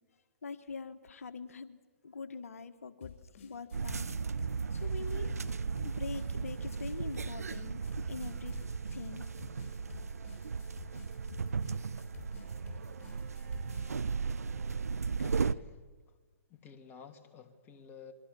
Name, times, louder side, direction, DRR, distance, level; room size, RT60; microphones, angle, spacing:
voice 1, 0.4-1.8 2.0-4.1 4.7-5.3 5.8-8.6 8.9-9.2, left 5 dB, 75° left, 10 dB, 1.6 m, -43 dB
sound 1, 3.0-14.0, left 8 dB, 50° left, 7.9 m, -51 dB
sound 2, 3.7-15.5, right 5 dB, 85° right, 0.8 m, -36 dB
Singing / Musical instrument, 4.9-14.8, right 9 dB, 50° right, 2.6 m, -58 dB
voice 2, 15.2-15.8 16.1-16.2 16.5-18.1, left 6 dB, 25° left, 5 dB, 2.8 m, -52 dB
28.5 x 23.0 x 7.1 m, 1.4 s
hypercardioid pair, 125°, 8 cm